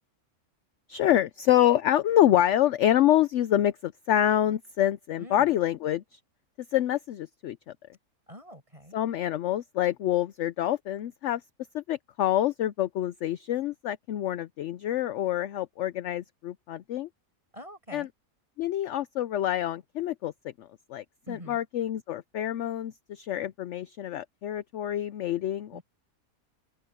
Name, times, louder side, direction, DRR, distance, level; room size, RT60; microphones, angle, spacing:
voice 1, 0.9-6.2 6.7-7.6 8.9-11.4 11.7-17.1 17.9-18.1 18.6-20.3 20.6-25.8, left 12 dB, 65° left, 0.8 m, -26 dB
voice 2, 8.3-9.0 17.5-18.1 21.3-21.6 25.7-25.8, equal, 20° right, 6.8 m, -45 dB
omnidirectional pair, 1.6 m